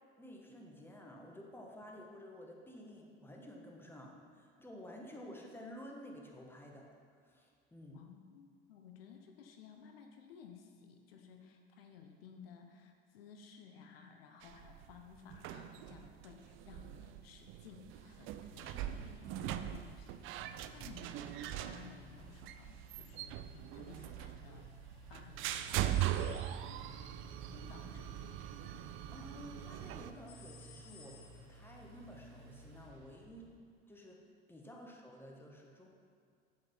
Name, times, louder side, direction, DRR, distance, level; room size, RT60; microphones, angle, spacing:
voice 1, 0.2-6.9 7.1-8.0 20.8-20.9 29.1-33.5 33.9-34.2 34.5-35.9, equal, 5° left, 0 dB, 1.5 m, -52 dB
voice 2, 7.9-24.7 25.1-25.8 26.6-26.9 27.5-28.4, left 7 dB, 70° left, 4 dB, 0.8 m, -56 dB
sound 1, 14.4-30.1, right 12 dB, 45° right, 0.5 m, -41 dB
Engine, 17.9-33.6, right 2 dB, 65° right, 1.5 m, -57 dB
sound 2, 25.5-26.9 30.3-31.7, left 4 dB, 45° left, 1.2 m, -59 dB
7.7 x 7.6 x 4.5 m, 2.2 s
hypercardioid pair, 75°, 31 cm